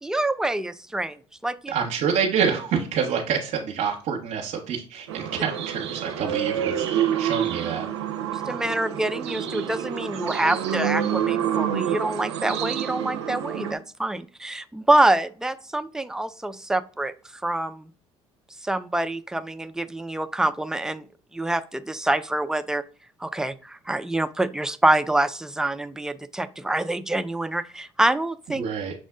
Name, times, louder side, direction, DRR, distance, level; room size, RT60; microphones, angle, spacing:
voice 1, 0.0-1.7 8.3-17.1 17.4-17.9 18.6-21.1 21.3-22.8 23.2-28.6, right 1 dB, 5° right, 11 dB, 0.4 m, -26 dB
voice 2, 1.7-7.9 28.6-28.9, right 7 dB, 60° right, 0 dB, 0.8 m, -27 dB
sound 1, 5.1-13.7, right 9 dB, 90° right, 0.5 m, -28 dB
6.2 x 2.1 x 3.5 m, 0.39 s
hypercardioid pair, 60°, 14 cm